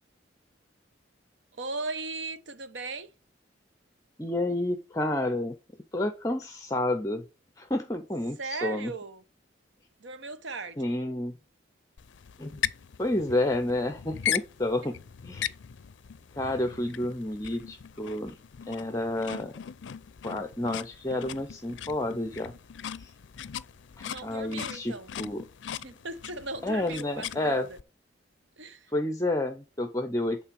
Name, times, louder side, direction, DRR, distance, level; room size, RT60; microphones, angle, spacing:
voice 1, 1.5-3.1 8.4-9.2 10.0-10.9 16.4-16.6 24.0-25.2 25.8-27.8 28.6-28.9, right 3 dB, 75° right, 0.9 m, -38 dB
voice 2, 4.2-5.6 5.9-7.2 7.6-8.9 10.8-11.3 12.4-12.6 13.0-14.9 15.2-15.5 16.4-18.4 18.7-19.5 20.2-22.5 23.0-23.1 24.0-25.4 26.6-27.7 28.9-30.4, left 1 dB, 15° left, 0.7 m, -30 dB
sound 1, 12.0-27.8, left 9 dB, 75° left, 0.4 m, -39 dB
8.7 x 3.8 x 6.8 m
head